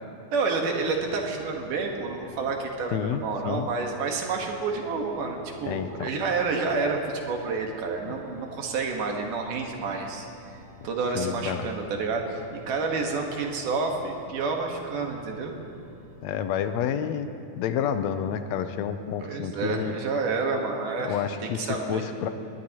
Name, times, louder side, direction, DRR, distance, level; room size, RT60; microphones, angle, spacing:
voice 1, 0.3-10.3 10.8-12.4 12.7-15.5 19.2-22.0, right 4 dB, 85° right, 1 dB, 3.1 m, -29 dB
sound 1, 0.7-16.2, left 1 dB, 40° right, 1.7 m, -51 dB
voice 2, 2.9-3.7 5.6-6.1 8.1-8.2 11.1-11.7 16.2-17.3 17.5-20.0 21.0-22.3, left 8 dB, 75° left, 9 dB, 1.7 m, -29 dB
21.5 x 19.5 x 3.0 m, 2.7 s
omnidirectional pair, 3.6 m